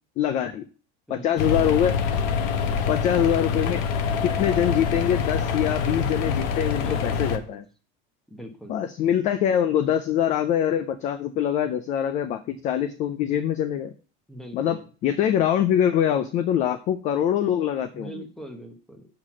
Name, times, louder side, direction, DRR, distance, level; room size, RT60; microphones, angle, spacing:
voice 1, 0.2-0.6 1.1-2.0 2.9-3.8 4.2-7.6 8.7-13.9 14.5-14.8 15.0-18.2, left 9 dB, 25° left, 12 dB, 0.3 m, -24 dB
voice 2, 1.1-1.5 2.6-3.0 6.8-7.6 8.3-8.8 14.3-14.8 17.9-19.1, right 1 dB, ahead, 5 dB, 0.9 m, -42 dB
sound 1, 1.4-7.4, left 6 dB, 85° left, 1.2 m, -25 dB
6.5 x 5.8 x 6.1 m, 0.38 s
cardioid pair, 175°, 29 cm